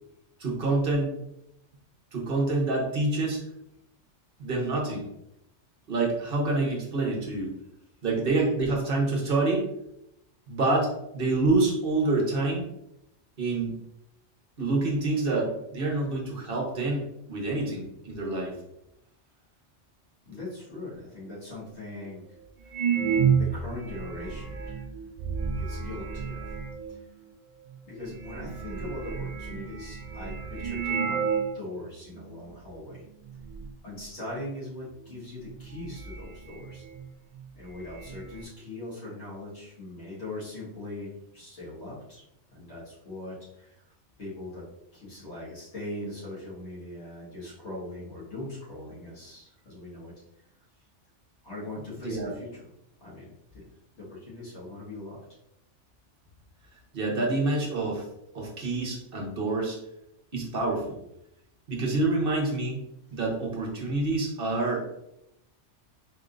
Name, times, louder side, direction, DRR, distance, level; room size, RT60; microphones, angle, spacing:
voice 1, 0.4-1.1 2.1-3.4 4.4-5.1 5.9-7.5 8.0-9.7 10.5-12.6 13.4-13.8 14.6-18.6 52.0-52.3 56.9-58.0 58.3-59.8 60.3-61.0 61.7-62.8 63.1-64.9, right 2 dB, 50° right, -1 dB, 1.2 m, -27 dB
voice 2, 20.3-22.8 23.2-24.9 25.4-26.5 26.9-27.0 27.8-31.3 31.5-33.0 33.8-36.8 37.5-42.2 42.5-43.8 44.2-44.6 44.9-50.1 51.4-52.6 53.0-53.6 53.9-55.2, left 2 dB, 65° left, -8 dB, 1.9 m, -40 dB
sound 1, 21.2-21.3 22.0-22.1 22.7-27.0 27.7-27.8 28.0-31.6 31.9-32.0 32.6-33.0 33.2-33.7 35.0-35.1 35.5-37.1 37.3-37.4 37.7-38.4, right 6 dB, 80° right, 0.3 m, -31 dB
4.7 x 3.5 x 2.5 m, 0.82 s
omnidirectional pair, 1.3 m